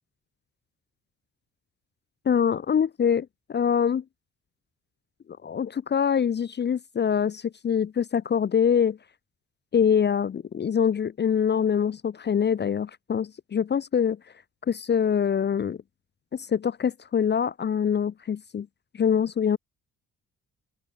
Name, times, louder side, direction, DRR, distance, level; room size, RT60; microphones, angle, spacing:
voice 1, 2.3-4.0 5.4-9.0 9.7-14.2 14.7-15.8 16.3-18.7 18.9-19.6, left 7 dB, 35° left, 0.7 m, -24 dB
open air
cardioid pair, 90°, 30 cm